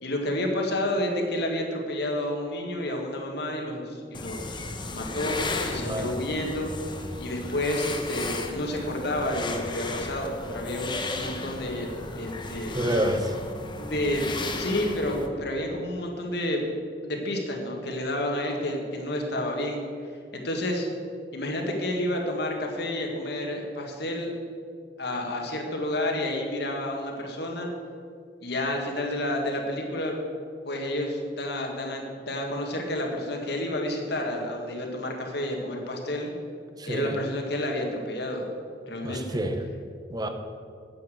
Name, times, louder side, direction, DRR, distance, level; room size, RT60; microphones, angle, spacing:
voice 1, 0.0-4.6 4.9-6.7 7.2-12.7 13.8-16.7 17.0-19.8 20.3-20.9 21.3-24.3 25.0-27.7 28.4-30.2 30.7-36.3 36.9-38.5 38.8-39.2, left 1 dB, 65° left, 1 dB, 1.8 m, -30 dB
sound 1, 4.1-15.3, left 2 dB, 25° left, 1.0 m, -35 dB
voice 2, 5.7-6.2 12.7-13.4 36.8-37.2 39.0-39.6 40.1-40.3, right 1 dB, 20° right, 6 dB, 0.9 m, -28 dB
9.5 x 7.2 x 7.8 m, 2.2 s
head